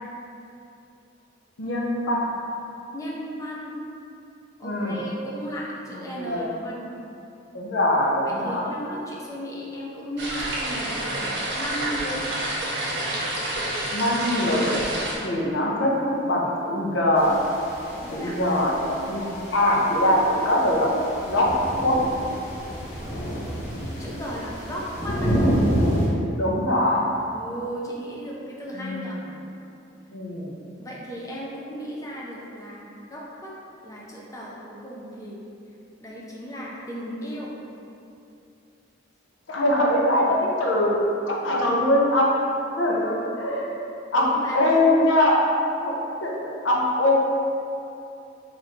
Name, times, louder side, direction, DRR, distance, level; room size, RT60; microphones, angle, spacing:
voice 1, 1.6-2.3 4.6-5.0 6.2-6.5 7.5-8.6 13.9-14.9 15.2-17.4 18.1-20.9 21.3-21.5 21.8-22.0 26.4-27.0 28.7-29.0 30.1-30.5 39.5-41.0 41.3-42.4 42.8-43.9 44.1-45.4 45.8-45.9 46.2-47.2, left 1 dB, 75° left, -2 dB, 0.6 m, -22 dB
voice 2, 2.9-3.7 4.6-6.9 8.2-11.2 11.6-12.2 17.9-18.4 24.0-25.4 27.3-29.2 30.8-33.5 33.8-35.4 36.0-37.6 44.2-44.6, equal, 15° left, -5 dB, 0.4 m, -35 dB
sound 1, 10.2-15.2, right 1 dB, 55° right, 0.7 m, -28 dB
sound 2, 17.2-26.1, equal, 35° left, 1.2 m, -29 dB
3.1 x 2.5 x 4.1 m, 2.7 s
head